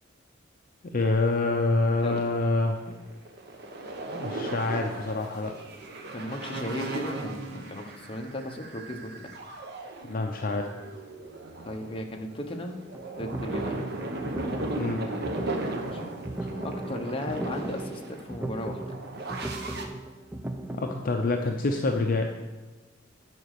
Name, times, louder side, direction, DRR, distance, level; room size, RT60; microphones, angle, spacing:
voice 1, 0.8-2.8 4.1-5.5 10.0-10.9 14.8-15.0 20.8-22.3, left 2 dB, 45° left, 3 dB, 0.6 m, -26 dB
voice 2, 1.8-2.2 6.1-9.4 11.6-12.8 13.2-13.8 15.9-16.1 16.6-18.8, left 1 dB, 30° left, 3 dB, 0.9 m, -36 dB
sound 1, 2.2-2.3 2.6-19.8, right 2 dB, 55° right, 1.0 m, -37 dB
sound 2, 12.9-21.1, right 1 dB, 10° right, 0.5 m, -37 dB
9.6 x 5.1 x 6.6 m, 1.2 s
head